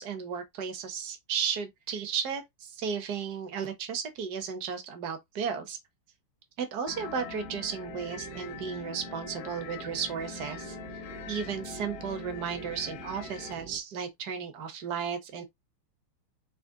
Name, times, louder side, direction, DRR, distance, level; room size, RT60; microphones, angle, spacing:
voice 1, 0.0-5.8 6.6-15.4, right 7 dB, 55° right, 1.4 m, -34 dB
sound 1, 6.9-13.5, left 12 dB, 75° left, 1.0 m, -44 dB
sound 2, 6.9-13.8, right 9 dB, 75° right, 0.8 m, -46 dB
6.1 x 2.2 x 3.8 m
omnidirectional pair, 2.4 m